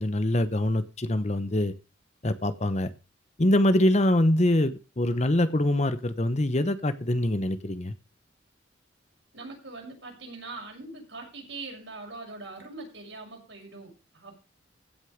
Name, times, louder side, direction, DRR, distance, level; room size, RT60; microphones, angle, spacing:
voice 1, 0.0-1.7 2.2-2.9 3.4-7.9, left 1 dB, 35° left, 12 dB, 0.9 m, -24 dB
voice 2, 9.3-14.4, right 3 dB, 70° right, 0 dB, 6.2 m, -42 dB
16.0 x 6.3 x 5.1 m, 0.32 s
head